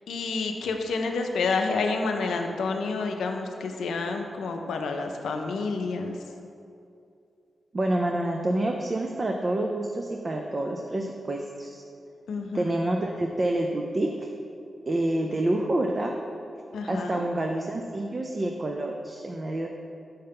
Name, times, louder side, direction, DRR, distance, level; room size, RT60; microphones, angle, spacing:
voice 1, 0.1-6.2 12.3-12.7 16.7-17.2, left 4 dB, 85° left, 4 dB, 0.5 m, -29 dB
voice 2, 7.7-11.8 12.5-14.1 14.9-16.1 16.9-19.7, right 1 dB, 40° right, 2 dB, 0.4 m, -28 dB
5.5 x 5.5 x 3.5 m, 2.6 s
cardioid pair, 50°, 0 cm